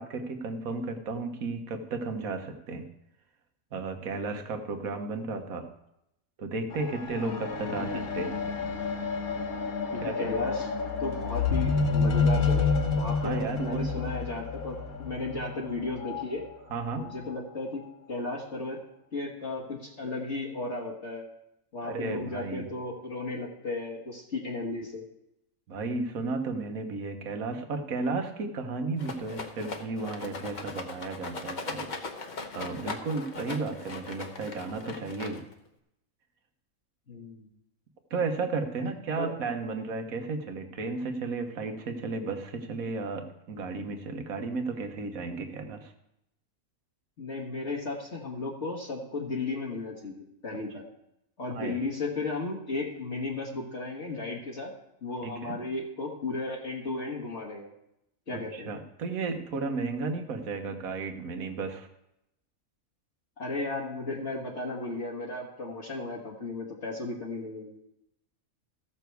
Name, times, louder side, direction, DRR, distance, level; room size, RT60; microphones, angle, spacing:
voice 1, 0.0-2.9 3.7-5.7 6.4-8.3 10.0-10.3 13.2-14.1 16.7-17.1 21.8-22.7 25.7-31.9 32.5-35.4 38.1-45.9 51.5-51.8 55.2-55.6 58.3-61.9, right 3 dB, 75° right, 6 dB, 1.6 m, -34 dB
sound 1, 6.7-16.2 17.0-17.1, left 4 dB, 90° left, 1.7 m, -29 dB
voice 2, 9.9-10.7 11.0-16.5 16.9-17.8 18.1-18.8 19.1-21.3 21.7-25.0 37.1-37.5 39.2-39.4 47.2-50.8 51.4-54.7 55.0-57.7 58.3-58.7 63.4-67.8, left 3 dB, 55° left, -3 dB, 1.9 m, -35 dB
Rattle, 29.0-35.7, left 3 dB, 35° left, 1.0 m, -39 dB
15.0 x 7.0 x 4.6 m, 0.82 s
omnidirectional pair, 1.5 m